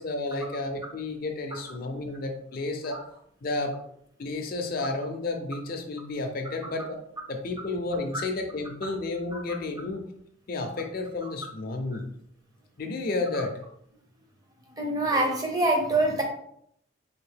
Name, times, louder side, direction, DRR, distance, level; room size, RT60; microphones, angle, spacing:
voice 1, 0.0-3.0 3.4-3.8 4.2-7.0 7.3-10.0 10.5-12.0 12.8-13.6, left 2 dB, 45° left, 4 dB, 0.4 m, -31 dB
voice 2, 14.7-16.2, right 2 dB, 20° right, 1 dB, 0.6 m, -25 dB
3.5 x 2.5 x 3.4 m, 0.70 s
head